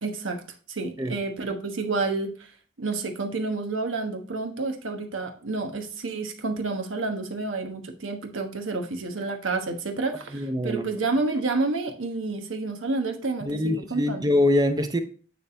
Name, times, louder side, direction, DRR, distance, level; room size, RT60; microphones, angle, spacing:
voice 1, 0.0-0.4 0.7-2.5 2.8-14.2, right 3 dB, 85° right, 4 dB, 1.1 m, -29 dB
voice 2, 10.3-10.9 13.4-15.0, left 1 dB, 20° right, 8 dB, 0.6 m, -24 dB
9.3 x 3.4 x 4.2 m, 0.42 s
head